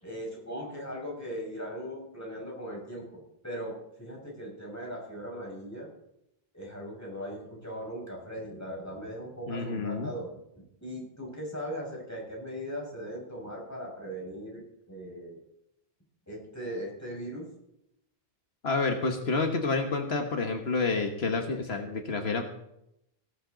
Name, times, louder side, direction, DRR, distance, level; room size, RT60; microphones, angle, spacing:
voice 1, 0.0-5.9 6.5-10.3 10.6-15.4 16.3-17.5, equal, 15° left, -2 dB, 6.0 m, -39 dB
voice 2, 9.5-10.1 18.6-22.4, left 4 dB, 80° left, 4 dB, 1.8 m, -29 dB
18.0 x 15.5 x 4.0 m, 0.80 s
omnidirectional pair, 1.0 m